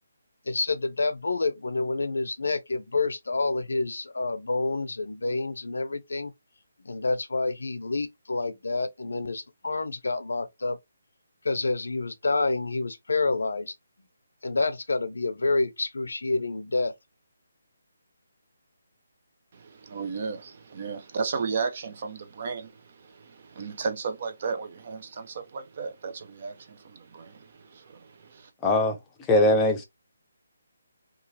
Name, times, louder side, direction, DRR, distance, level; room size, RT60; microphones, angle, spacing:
voice 1, 0.5-6.3 6.8-10.8 11.4-13.7 14.4-16.9, left 3 dB, 80° left, 0.5 m, -28 dB
voice 2, 19.5-28.5, right 5 dB, 45° right, 0.5 m, -34 dB
voice 3, 28.6-29.0 29.3-29.8, left 1 dB, 10° left, 0.6 m, -20 dB
3.0 x 2.4 x 2.7 m
hypercardioid pair, 160°, 0 cm